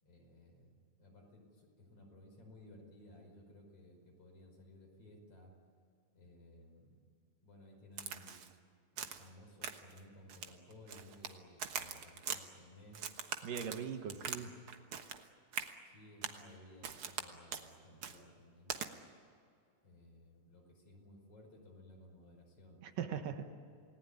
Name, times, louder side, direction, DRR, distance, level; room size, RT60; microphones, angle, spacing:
voice 1, 0.0-5.5 6.1-7.1 7.4-8.4 8.9-13.0 14.0-14.6 15.8-18.8 19.8-22.8, left 1 dB, 45° left, 2 dB, 6.0 m, -58 dB
Crack, 8.0-8.5 9.0-9.3 9.6-10.0 10.3-11.3 11.6-12.4 12.9-14.4 14.7-15.2 15.5-15.7 16.2-16.4 16.8-17.2 17.5-17.7 18.0-18.2 18.7-18.9, right 7 dB, 55° right, 1.6 m, -42 dB
voice 2, 13.4-14.5 22.8-23.4, right 7 dB, 75° right, 7 dB, 3.0 m, -40 dB
28.0 x 19.5 x 9.7 m, 2.3 s
omnidirectional pair, 3.9 m